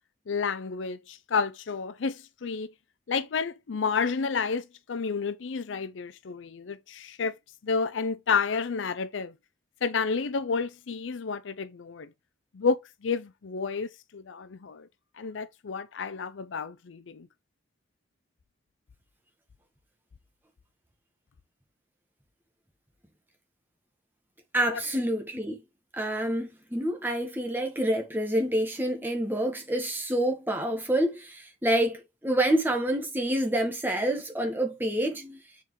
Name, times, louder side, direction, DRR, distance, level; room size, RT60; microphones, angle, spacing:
voice 1, 0.3-2.7 3.1-7.4 7.6-9.3 9.8-12.1 12.5-14.9 15.2-17.3 24.7-24.8, left 5 dB, 85° left, 0.5 m, -30 dB
voice 2, 24.5-25.6 26.0-35.4, right 1 dB, 10° right, 1.6 m, -27 dB
6.8 x 4.6 x 3.3 m
head